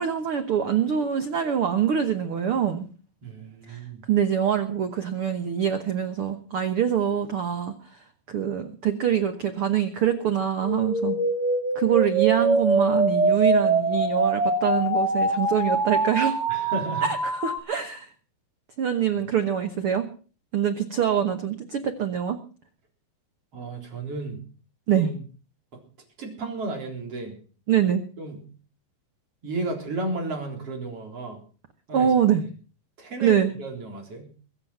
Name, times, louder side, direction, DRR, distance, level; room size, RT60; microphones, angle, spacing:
voice 1, 0.0-2.9 3.7-3.8 4.1-7.7 8.3-11.2 11.7-16.5 17.0-18.1 18.8-20.1 20.5-22.4 24.9-25.1 27.7-28.0 31.9-32.5 33.2-33.5, right 9 dB, 90° right, 8 dB, 1.2 m, -24 dB
voice 2, 3.2-4.0 16.5-17.1 23.5-24.4 24.9-25.1 26.2-27.3 28.2-28.4 29.4-31.4 31.9-32.1 33.0-34.3, right 2 dB, 40° right, 2 dB, 4.6 m, -33 dB
sound 1, 10.6-17.6, right 2 dB, 15° right, 1.4 m, -24 dB
23.0 x 8.3 x 5.7 m, 0.39 s
omnidirectional pair, 4.3 m